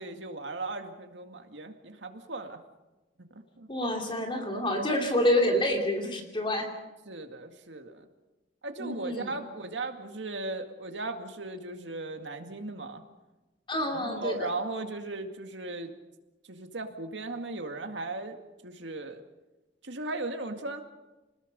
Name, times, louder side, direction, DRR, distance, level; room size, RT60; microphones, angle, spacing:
voice 1, 0.0-2.6 3.6-3.7 7.1-8.1 8.6-13.0 13.9-15.9 16.5-18.4 18.6-19.2 19.8-20.8, right 2 dB, 75° right, 6 dB, 2.2 m, -37 dB
voice 2, 3.7-6.7 8.8-9.3 13.7-14.5, left 1 dB, 25° left, 3 dB, 2.6 m, -28 dB
27.0 x 20.0 x 5.4 m, 1.1 s
head